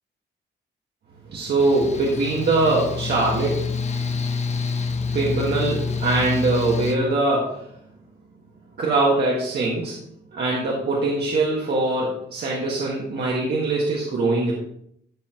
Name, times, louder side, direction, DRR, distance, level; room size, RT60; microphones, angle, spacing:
voice 1, 1.3-4.1 5.1-7.7 8.8-10.0 10.3-14.5, right 2 dB, 60° right, -3 dB, 1.8 m, -22 dB
Mechanical fan, 1.6-7.0, left 4 dB, 35° left, 0.8 m, -27 dB
12.5 x 5.7 x 3.1 m, 0.71 s
cardioid pair, 110°, 19 cm